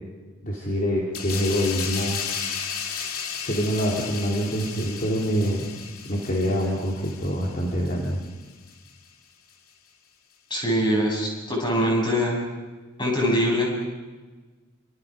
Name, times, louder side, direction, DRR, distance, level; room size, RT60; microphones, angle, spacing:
voice 1, 0.4-2.2 3.4-5.7 6.0-8.2, equal, 40° left, -3 dB, 3.2 m, -25 dB
sound 1, 1.1-8.3 8.7-8.9, left 7 dB, 90° left, 2.6 m, -34 dB
voice 2, 10.5-12.4 13.0-13.7, equal, 20° left, -1 dB, 7.2 m, -23 dB
29.0 x 25.5 x 5.0 m, 1.3 s
head